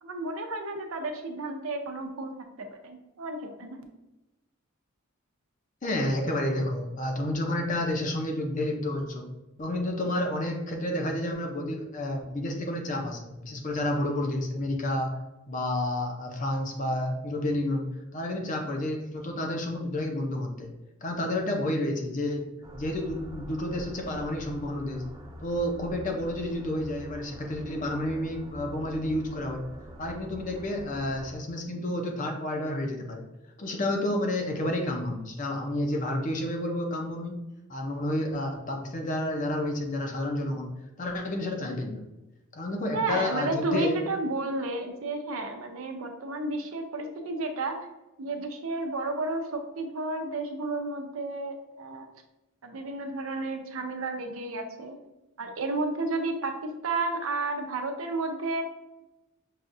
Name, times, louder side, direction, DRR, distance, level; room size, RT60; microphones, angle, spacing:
voice 1, 0.0-3.8 42.9-47.8 48.2-52.1 52.6-55.0 55.4-58.6, right 2 dB, 85° right, 5 dB, 0.6 m, -32 dB
voice 2, 5.8-9.3 9.6-15.2 15.5-20.7 21.0-22.5 22.7-25.0 25.4-29.6 30.0-33.2 33.6-37.4 37.7-40.7 41.0-42.0 42.5-44.0, left 1 dB, 40° left, 2 dB, 0.6 m, -30 dB
sound 1, 22.6-31.4, equal, 20° right, 0.4 m, -44 dB
5.7 x 2.4 x 2.6 m, 1.0 s
head